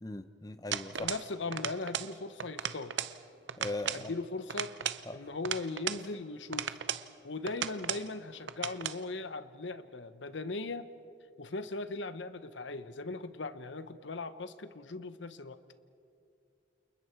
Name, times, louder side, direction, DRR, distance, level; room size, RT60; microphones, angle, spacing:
voice 1, 0.0-1.1 3.6-4.1 5.1-5.3, left 2 dB, 20° left, 11 dB, 0.6 m, -39 dB
sound 1, 0.7-1.3 1.5-2.1 2.4-3.2 3.5-4.1 4.5-6.0 6.5-7.1 7.5-8.1 8.5-9.0, right 9 dB, 70° right, 0.7 m, -36 dB
voice 2, 1.0-2.9 3.9-6.8 7.2-10.9 11.4-15.6, left 3 dB, 75° left, 12 dB, 1.0 m, -39 dB
29.0 x 28.5 x 4.6 m, 2.4 s
head